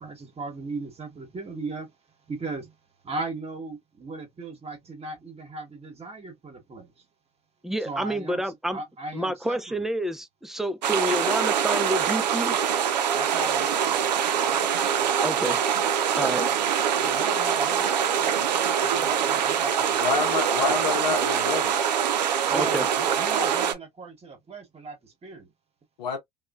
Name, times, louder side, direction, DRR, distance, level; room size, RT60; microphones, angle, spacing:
voice 1, 0.0-1.9 2.3-2.7 3.0-7.0 7.8-9.8 13.1-14.0 16.2-16.6 17.0-20.0 20.5-20.8 22.5-25.4, right 3 dB, 30° right, 1.1 m, -37 dB
voice 2, 7.6-8.8 9.1-12.6 15.2-15.6 16.2-16.5 22.5-22.9, equal, ahead, 0.4 m, -28 dB
sound 1, 10.8-23.7, right 8 dB, 85° right, 0.5 m, -24 dB
voice 3, 20.0-21.8 26.0-26.2, left 5 dB, 80° left, 0.8 m, -27 dB
3.0 x 2.2 x 2.3 m
hypercardioid pair, 70°, 21 cm